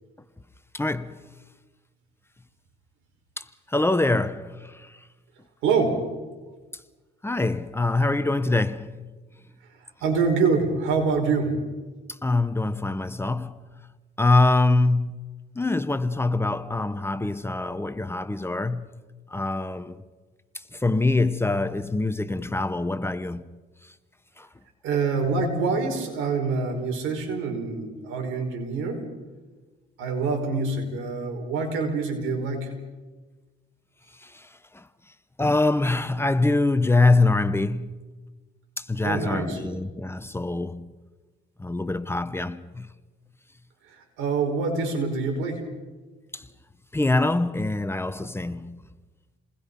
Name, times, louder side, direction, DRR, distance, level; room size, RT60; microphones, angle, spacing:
voice 1, 0.7-1.2 3.4-4.9 7.2-9.0 12.1-13.6 14.2-18.9 19.3-20.0 20.7-23.4 24.4-24.5 34.2-34.5 34.7-34.9 35.4-38.0 38.8-40.9 41.6-42.9 46.3-46.5 46.9-48.8, left 2 dB, 10° left, 1.0 m, -24 dB
voice 2, 5.6-6.0 10.0-11.6 24.8-29.1 30.0-32.7 39.0-39.6 44.2-45.6, right 4 dB, 90° right, 5.1 m, -25 dB
29.0 x 20.5 x 5.5 m
cardioid pair, 95°, 20 cm